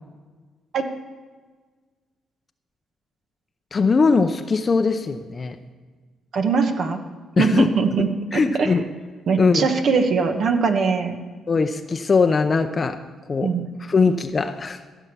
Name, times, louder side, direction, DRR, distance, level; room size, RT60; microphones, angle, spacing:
voice 1, 3.7-5.6 7.4-7.7 8.3-8.8 9.4-9.7 11.5-13.0 13.3-13.5 13.9-14.8, left 4 dB, 35° left, 7 dB, 0.6 m, -20 dB
voice 2, 6.3-7.0 7.4-8.7 9.3-11.2 13.4-13.7, right 5 dB, 60° right, 6 dB, 1.3 m, -21 dB
15.0 x 7.1 x 7.0 m, 1.4 s
cardioid pair, 90°, 0 cm